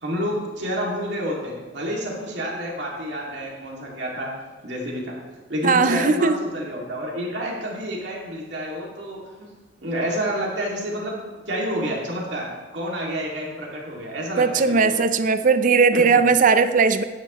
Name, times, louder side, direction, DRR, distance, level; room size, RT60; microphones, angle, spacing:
voice 1, 0.0-4.3 4.6-5.2 5.5-9.5 9.8-11.2 11.5-15.0 15.9-16.2, equal, 70° right, -3 dB, 2.3 m, -29 dB
voice 2, 5.6-6.3 14.4-17.0, right 4 dB, 45° right, 11 dB, 0.5 m, -18 dB
10.0 x 9.9 x 3.0 m, 1.3 s
head